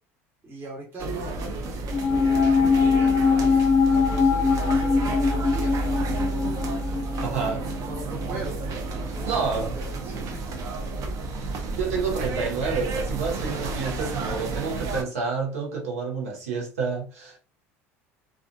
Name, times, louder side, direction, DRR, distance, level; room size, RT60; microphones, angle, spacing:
voice 1, 0.4-6.5 7.2-8.8 9.1-9.3 9.5-10.4, right 1 dB, 30° right, 1.2 m, -40 dB
sound 1, 1.0-15.0, right 3 dB, 50° right, 0.6 m, -31 dB
sound 2, 1.9-8.5 8.7-8.8, left 5 dB, 30° left, 0.5 m, -22 dB
voice 2, 7.2-7.6 9.3-9.8 11.8-17.4, right 5 dB, 85° right, 0.8 m, -29 dB
2.4 x 2.4 x 2.4 m
hypercardioid pair, 75°, 8 cm